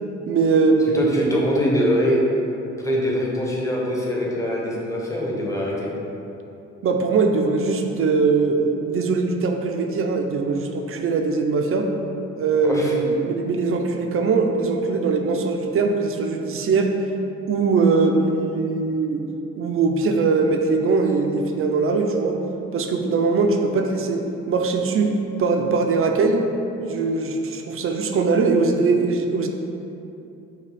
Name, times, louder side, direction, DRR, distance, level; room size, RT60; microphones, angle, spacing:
voice 1, 0.3-1.3 6.8-11.9 12.4-16.9 17.5-19.2 19.6-22.4 22.7-24.2 24.5-26.5 26.8-29.5, right 4 dB, 45° right, 4 dB, 0.4 m, -21 dB
voice 2, 0.9-2.2 2.8-5.9 12.6-12.9, equal, 10° left, -4 dB, 0.8 m, -23 dB
5.5 x 2.3 x 3.4 m, 2.8 s
cardioid pair, 90°, 30 cm